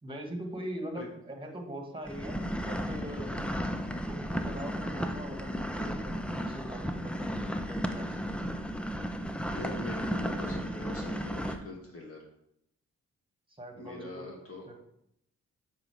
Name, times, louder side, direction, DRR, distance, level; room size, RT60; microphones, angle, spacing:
voice 1, 0.0-2.4 2.6-3.4 4.1-8.6 13.6-14.3 14.7-14.8, right 1 dB, 15° right, 3 dB, 1.8 m, -42 dB
sound 1, 2.0-11.6, equal, 5° left, 0.7 m, -34 dB
voice 2, 3.3-3.7 9.5-12.2 13.8-14.7, left 2 dB, 45° left, -1 dB, 1.7 m, -43 dB
7.0 x 3.9 x 4.8 m, 0.76 s
supercardioid pair, 40°, 32 cm